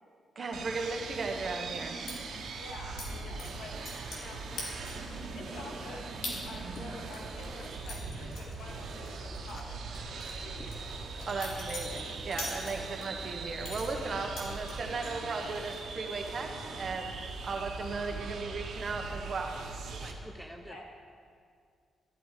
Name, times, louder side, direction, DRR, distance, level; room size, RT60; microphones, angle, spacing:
voice 1, 0.3-2.0 6.6-6.8 11.3-16.5 16.8-17.1 17.4-19.6, right 3 dB, 40° right, 3 dB, 1.4 m, -36 dB
sound 1, 0.5-20.1, right 4 dB, 70° right, 1.4 m, -41 dB
sound 2, 2.1-2.2 3.0-3.1 3.4-4.3 4.6-5.1 5.5-5.6 6.2-6.4 6.8-9.1 9.3-9.5 9.9-13.1 13.6-15.1 15.5-16.0 16.2-16.6, left 2 dB, 85° left, 3.3 m, -42 dB
voice 2, 2.6-3.7 4.1-4.8 5.3-9.9 10.2-10.8 11.2-11.4 12.7-12.8 20.7-20.8, left 2 dB, 70° left, -2 dB, 2.9 m, -48 dB
sound 3, 2.7-12.6, left 2 dB, 35° left, 1.2 m, -54 dB
voice 3, 19.9-20.8, equal, ahead, 3 dB, 0.7 m, -47 dB
13.5 x 12.0 x 5.0 m, 2.2 s
wide cardioid pair, 150°, 0 cm